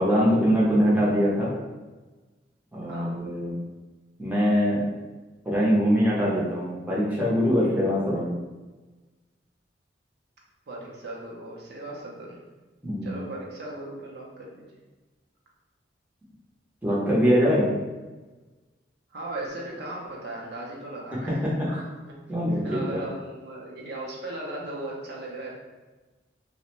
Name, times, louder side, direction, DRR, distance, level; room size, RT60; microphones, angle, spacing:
voice 1, 0.0-1.5 2.7-3.5 4.2-4.8 5.5-8.3 12.8-13.2 16.8-17.7 21.4-21.8 22.3-23.0, equal, 10° right, -7 dB, 0.6 m, -23 dB
voice 2, 2.8-3.2 7.6-7.9 10.7-12.4 13.0-14.7 19.1-21.6 22.1-22.2 22.5-25.6, right 2 dB, 60° right, -3 dB, 0.5 m, -37 dB
2.4 x 2.0 x 2.9 m, 1.2 s
head